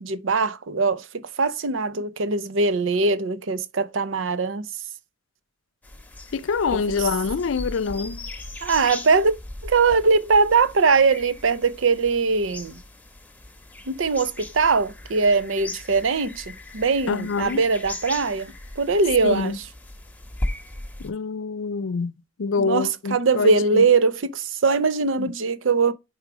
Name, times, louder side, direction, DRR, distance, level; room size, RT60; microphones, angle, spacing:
voice 1, 0.0-4.7 8.6-9.3 9.6-12.8 13.9-19.5 22.6-25.9, right 4 dB, 75° right, 0.6 m, -21 dB
sound 1, 5.8-21.1, left 1 dB, 10° left, 1.0 m, -38 dB
voice 2, 6.3-8.3 17.1-17.6 19.2-19.6 21.0-22.1 22.4-23.9 25.2-25.3, left 5 dB, 80° left, 0.5 m, -26 dB
4.7 x 4.7 x 4.9 m
head